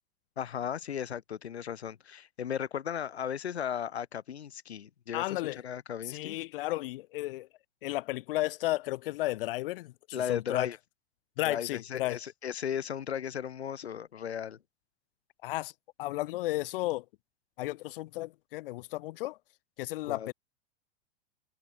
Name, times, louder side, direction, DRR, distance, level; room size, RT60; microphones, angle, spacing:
voice 1, 0.4-6.4 10.1-10.8 11.4-14.6 20.1-20.3, left 8 dB, 70° left, 4.9 m, -36 dB
voice 2, 5.1-5.6 6.1-7.5 7.8-10.7 11.4-12.2 15.4-15.7 16.0-17.0 17.6-19.4 19.8-20.3, left 18 dB, 55° left, 6.2 m, -33 dB
figure-of-eight pair, 95°, 33 cm